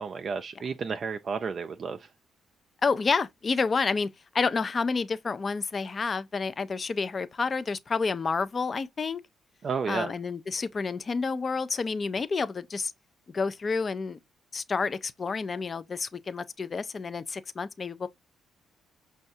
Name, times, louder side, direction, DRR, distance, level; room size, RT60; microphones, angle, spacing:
voice 1, 0.0-2.1 9.6-10.1, right 5 dB, 50° right, 0.3 m, -32 dB
voice 2, 2.8-9.2 9.9-12.9 13.3-14.2 14.5-18.1, left 4 dB, 35° left, 0.4 m, -29 dB
5.3 x 2.3 x 2.6 m
cardioid pair, 90°, 0 cm